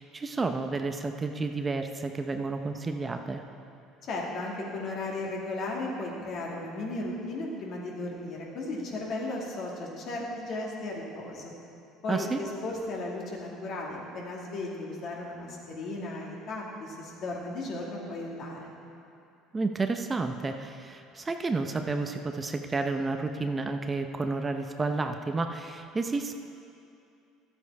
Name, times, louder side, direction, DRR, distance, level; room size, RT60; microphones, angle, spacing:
voice 1, 0.0-3.4 12.1-12.4 19.5-26.3, right 3 dB, 25° right, 6 dB, 0.6 m, -31 dB
voice 2, 4.0-11.5 12.0-18.7, left 2 dB, 55° left, -2 dB, 2.3 m, -35 dB
12.5 x 8.4 x 4.7 m, 2.6 s
supercardioid pair, 80°, 0 cm